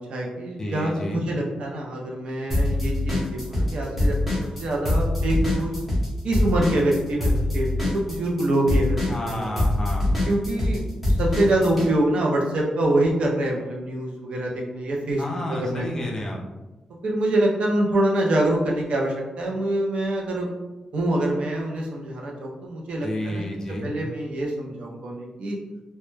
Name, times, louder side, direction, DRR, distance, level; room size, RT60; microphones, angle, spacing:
voice 1, 0.0-4.2 4.6-5.8 6.2-9.5 10.3-10.8 11.2-15.2 15.5-16.1 17.0-20.5 20.9-23.4 23.8-25.6, right 1 dB, 60° right, -1 dB, 0.5 m, -25 dB
voice 2, 0.6-1.3 9.1-10.2 15.2-16.4 23.0-23.9, left 1 dB, 30° left, -1 dB, 0.4 m, -30 dB
sound 1, 2.5-3.7 4.0-11.9, left 1 dB, 5° right, 0.7 m, -23 dB
2.1 x 2.1 x 3.1 m, 1.1 s
wide cardioid pair, 165°, 2 cm